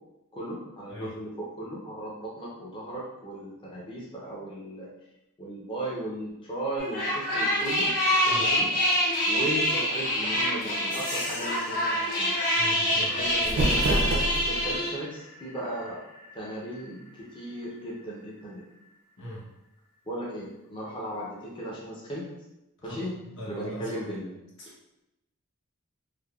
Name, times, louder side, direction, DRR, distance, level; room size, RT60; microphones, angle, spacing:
voice 1, 0.3-4.9 5.4-7.9 8.2-8.7 9.3-12.3 13.0-16.0 16.3-17.0 17.3-18.6 20.1-22.3 22.8-23.2 23.4-24.3, right 1 dB, 25° left, -5 dB, 0.5 m, -36 dB
sound 1, 6.8-14.9, equal, 40° left, 1.4 m, -26 dB
sound 2, 10.9-19.2, left 2 dB, 85° left, 1.2 m, -42 dB
voice 2, 12.6-13.3 19.2-19.4 22.9-23.0 23.4-23.9 24.6-24.7, left 1 dB, 60° left, -6 dB, 0.9 m, -40 dB
sound 3, 13.2-14.8, right 1 dB, 45° right, 0.3 m, -27 dB
3.3 x 2.0 x 2.3 m, 0.91 s
head